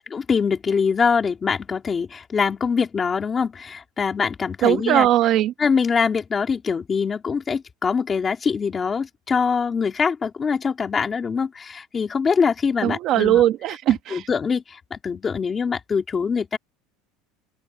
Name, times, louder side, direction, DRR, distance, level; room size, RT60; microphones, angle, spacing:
voice 1, 0.0-5.1 5.6-13.4 14.1-16.6, left 5 dB, 15° left, 3.3 m, -23 dB
voice 2, 4.6-5.5 12.8-14.3, right 12 dB, 35° right, 1.6 m, -19 dB
open air
cardioid pair, 175°, 0 cm